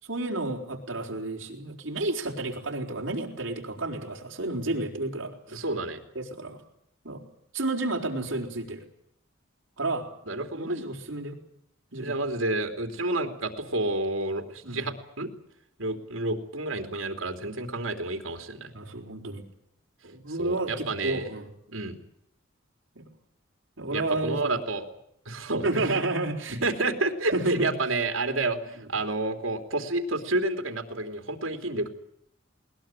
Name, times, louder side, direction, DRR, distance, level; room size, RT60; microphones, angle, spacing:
voice 1, 0.0-5.6 6.1-6.6 7.0-7.2 7.5-8.9 9.8-10.1 10.5-11.4 11.9-12.2 14.6-14.8 18.7-19.4 20.0-21.5 22.9-23.0 23.8-24.5 25.6-26.6 27.3-27.7, right 2 dB, 70° right, 0 dB, 4.6 m, -31 dB
voice 2, 5.5-6.0 10.3-10.9 12.0-15.3 15.8-18.7 20.3-21.3 21.7-22.0 23.9-24.9 25.2-26.0 26.6-31.9, right 2 dB, 90° right, 5 dB, 3.1 m, -30 dB
21.0 x 20.0 x 9.0 m, 0.74 s
head